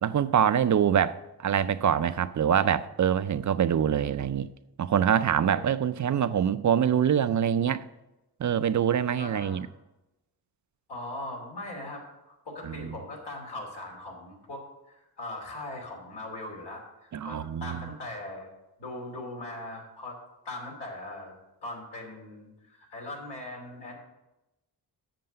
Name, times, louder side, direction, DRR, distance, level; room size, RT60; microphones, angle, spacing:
voice 1, 0.0-4.5 4.8-7.8 8.4-9.7 12.6-12.9 17.1-17.8, right 8 dB, 50° right, 13 dB, 0.5 m, -25 dB
voice 2, 9.2-9.6 10.9-18.5 18.8-20.2 20.4-21.3 21.6-24.0, left 1 dB, 85° left, -1 dB, 2.9 m, -40 dB
7.6 x 6.7 x 6.6 m, 0.96 s
cardioid pair, 75°, 40 cm